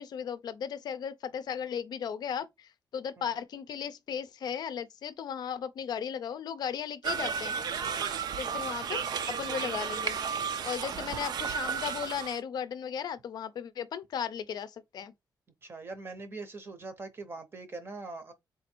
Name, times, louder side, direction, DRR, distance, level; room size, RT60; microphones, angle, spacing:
voice 1, 0.0-7.6 8.4-10.2 10.6-15.1, left 8 dB, 60° left, 0.5 m, -36 dB
sound 1, 7.0-12.4, right 6 dB, 60° right, 0.5 m, -33 dB
voice 2, 10.9-11.4 15.6-18.3, right 3 dB, 30° right, 0.7 m, -42 dB
3.8 x 2.5 x 4.3 m
wide cardioid pair, 160°, 8 cm